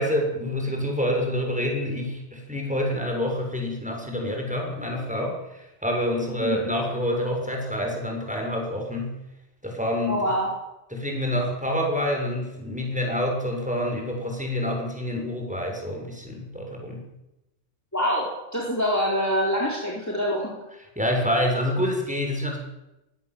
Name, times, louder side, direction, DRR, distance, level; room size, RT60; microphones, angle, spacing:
voice 1, 0.0-9.1 9.6-10.3 10.9-17.1 20.9-22.6, left 1 dB, 5° right, 1 dB, 6.7 m, -27 dB
voice 2, 6.2-6.6 10.1-10.5 17.9-20.6, equal, 15° left, -3 dB, 4.4 m, -25 dB
24.0 x 17.5 x 7.9 m, 0.94 s
omnidirectional pair, 1.3 m